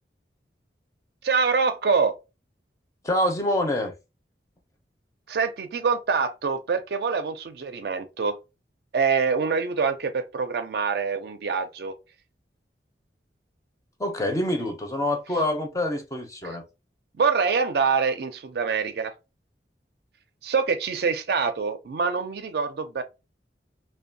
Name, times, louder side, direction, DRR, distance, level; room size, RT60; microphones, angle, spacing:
voice 1, 1.2-2.1 5.3-8.4 8.9-12.0 16.4-16.6 17.2-19.1 20.4-23.0, right 5 dB, 60° right, 0.4 m, -25 dB
voice 2, 3.0-3.9 14.0-16.7, left 1 dB, 20° left, 0.5 m, -26 dB
2.6 x 2.2 x 2.6 m
head